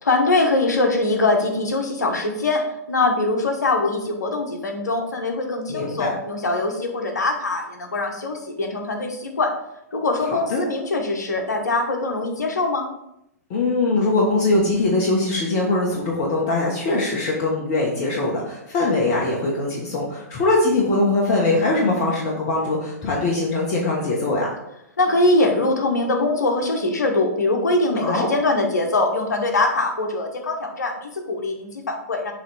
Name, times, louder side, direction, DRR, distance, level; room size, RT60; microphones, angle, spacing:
voice 1, 0.0-9.5 9.9-12.9 25.0-32.3, left 2 dB, 75° left, 3 dB, 1.1 m, -22 dB
voice 2, 5.7-6.1 10.5-10.6 13.5-24.5 28.0-28.3, left 2 dB, 40° left, -2 dB, 1.2 m, -21 dB
7.1 x 3.2 x 4.2 m, 0.82 s
figure-of-eight pair, 110°, 9 cm